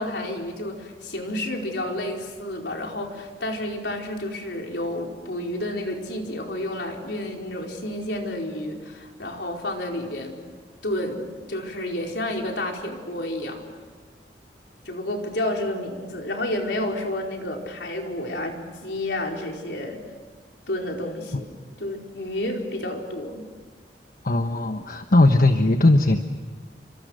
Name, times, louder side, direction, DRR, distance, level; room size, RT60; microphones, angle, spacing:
voice 1, 0.0-10.4 10.8-13.6 14.8-20.0 20.7-21.5 21.8-23.4, left 1 dB, 70° left, 1 dB, 4.7 m, -30 dB
voice 2, 24.2-26.2, left 2 dB, 50° left, 6 dB, 1.2 m, -18 dB
29.5 x 26.0 x 6.5 m, 1.5 s
head